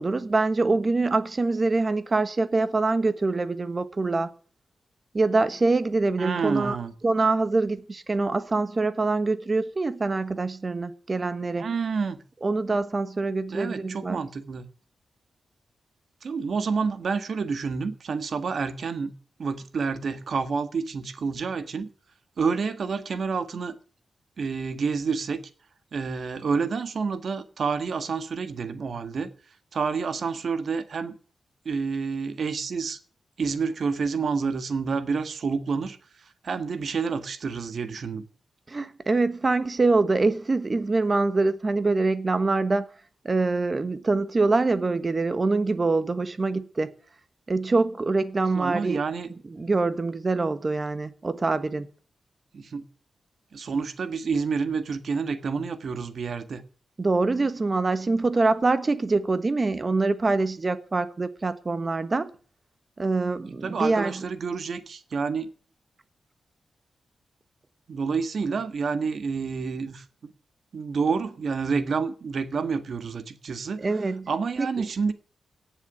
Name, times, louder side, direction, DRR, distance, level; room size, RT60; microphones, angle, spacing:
voice 1, 0.0-4.3 5.1-6.8 7.0-11.7 12.4-14.2 38.7-42.8 43.2-46.9 47.5-49.0 49.5-51.9 57.0-62.3 63.0-64.2 73.8-74.3 74.6-74.7, right 3 dB, 30° right, 1.3 m, -24 dB
voice 2, 6.2-6.9 11.5-12.2 13.5-14.7 16.2-19.1 19.4-21.9 22.4-23.7 24.4-25.4 25.9-29.3 29.7-31.2 31.6-33.0 33.4-36.0 36.4-38.3 48.5-49.3 52.5-52.8 53.5-56.6 63.5-65.5 67.9-70.3 70.7-73.9 74.3-75.1, right 5 dB, 60° right, 1.6 m, -29 dB
17.5 x 7.1 x 7.0 m
wide cardioid pair, 120°, 0 cm